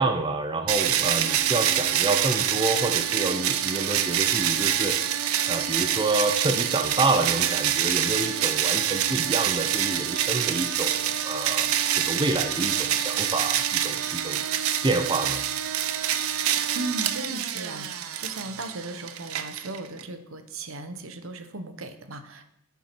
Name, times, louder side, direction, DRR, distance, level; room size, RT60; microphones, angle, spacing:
voice 1, 0.0-5.0 5.5-14.4 14.8-15.4, right 2 dB, 20° right, 6 dB, 0.6 m, -28 dB
sound 1, 0.7-20.0, right 10 dB, 90° right, 0.7 m, -26 dB
voice 2, 16.7-22.4, right 2 dB, 70° right, 8 dB, 1.1 m, -36 dB
7.4 x 7.3 x 6.0 m, 0.77 s
head